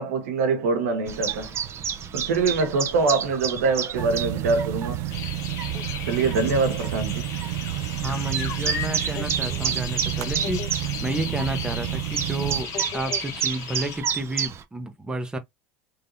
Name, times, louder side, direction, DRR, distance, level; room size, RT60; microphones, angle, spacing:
voice 1, 0.0-1.5 2.1-5.0 6.1-7.3, right 4 dB, 90° right, 1.6 m, -24 dB
Chirp tweet, 1.1-14.6, right 8 dB, 35° right, 0.8 m, -32 dB
sound 1, 3.9-12.6, right 15 dB, 65° right, 0.4 m, -30 dB
sound 2, 5.1-14.0, left 8 dB, 45° left, 1.2 m, -36 dB
voice 2, 8.0-15.4, right 1 dB, 10° right, 1.1 m, -31 dB
3.7 x 2.8 x 4.0 m
supercardioid pair, 110°, 7 cm